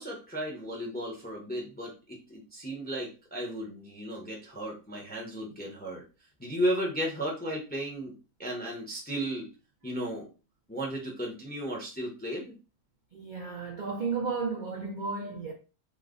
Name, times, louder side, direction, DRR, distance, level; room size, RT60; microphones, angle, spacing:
voice 1, 0.0-6.0 6.4-8.1 8.4-9.5 9.8-10.3 10.7-12.5, equal, 10° left, 0.5 m, -34 dB
voice 2, 13.1-15.5, right 4 dB, 80° right, 0.4 m, -33 dB
3.1 x 2.1 x 3.7 m
omnidirectional pair, 1.5 m